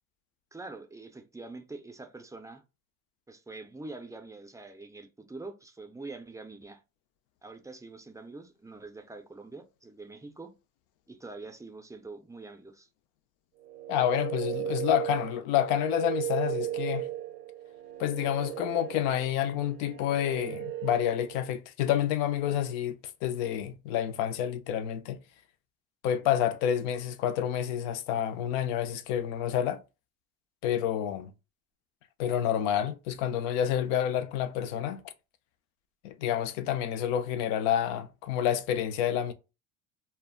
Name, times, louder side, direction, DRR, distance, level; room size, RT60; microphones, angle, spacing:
voice 1, 0.5-2.6 3.3-6.8 7.4-10.5 11.1-12.9, right 3 dB, 10° right, 0.4 m, -45 dB
sound 1, 13.6-21.5, right 13 dB, 80° right, 0.5 m, -36 dB
voice 2, 13.9-17.1 18.0-25.2 26.0-29.8 30.6-31.3 32.2-35.0 36.0-39.3, left 10 dB, 80° left, 0.5 m, -29 dB
2.1 x 2.0 x 3.6 m
supercardioid pair, 90°, 39 cm